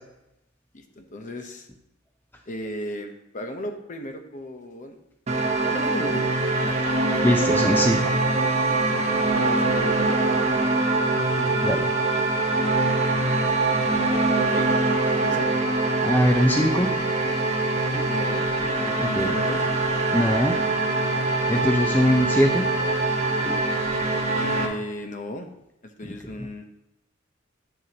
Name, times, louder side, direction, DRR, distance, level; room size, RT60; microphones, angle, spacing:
voice 1, 0.7-1.7 2.5-5.0 5.6-6.8 7.1-7.2 8.9-10.0 11.4-11.9 14.4-14.7 15.1-15.6 18.1-18.5 18.8-19.7 21.5-21.8 24.3-25.5 25.8-26.6, left 1 dB, 40° left, 5 dB, 0.9 m, -35 dB
sound 1, 5.3-24.7, right 2 dB, 35° right, 1.2 m, -23 dB
voice 2, 7.2-8.1 11.6-11.8 16.0-16.9 17.9-18.0 19.2-19.4 20.1-20.6 21.5-22.7 23.4-23.6, equal, 10° left, 3 dB, 0.6 m, -21 dB
11.0 x 6.9 x 2.9 m, 0.89 s
head